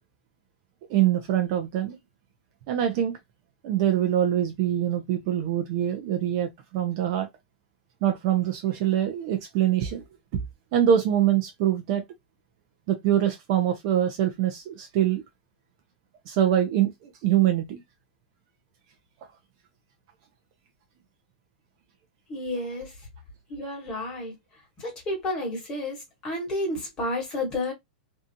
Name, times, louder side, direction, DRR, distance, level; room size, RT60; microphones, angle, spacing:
voice 1, 0.9-2.0 2.7-3.2 3.6-7.3 8.0-10.0 10.3-10.4 10.7-12.0 12.9-15.2 16.3-17.8, right 11 dB, 35° right, 0.5 m, -24 dB
voice 2, 22.3-22.9 23.5-24.3 24.8-27.7, left 1 dB, 20° left, 1.3 m, -31 dB
2.6 x 2.3 x 2.6 m
supercardioid pair, 165°, 5 cm